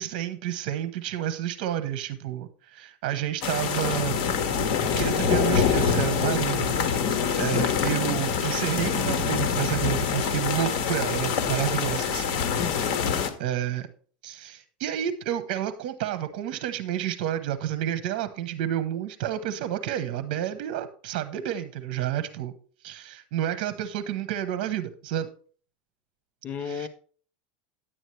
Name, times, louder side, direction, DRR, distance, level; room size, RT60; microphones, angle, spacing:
voice 1, 0.0-4.2 5.0-6.7 7.4-12.3 13.2-13.9 14.2-22.5 22.8-25.3 26.6-26.9, right 11 dB, 60° right, 1.0 m, -30 dB
sound 1, 3.4-13.3, left 6 dB, 55° left, 1.6 m, -25 dB
voice 2, 12.6-13.0 26.4-26.9, left 6 dB, 30° left, 0.7 m, -33 dB
10.0 x 9.0 x 3.3 m
supercardioid pair, 135°, 5 cm